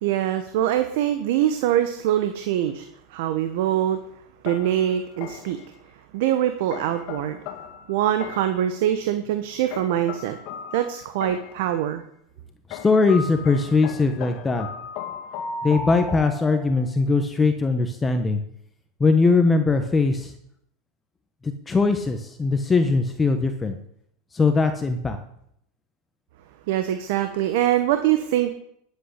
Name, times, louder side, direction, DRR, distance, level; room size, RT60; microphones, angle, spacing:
voice 1, 0.0-4.0 4.4-5.6 6.1-7.4 7.9-10.4 10.7-12.0 26.7-28.5, right 11 dB, 65° right, 8 dB, 1.2 m, -23 dB
sound 1, 4.5-5.7 6.7-8.7 9.7-11.7 12.7-17.0, left 5 dB, 55° left, 1.9 m, -37 dB
voice 2, 12.7-14.7 15.6-18.4 19.0-20.3 21.4-23.8 24.3-25.2, left 3 dB, 15° left, 7 dB, 1.2 m, -21 dB
11.5 x 8.2 x 8.3 m, 0.71 s
hypercardioid pair, 110°, 0 cm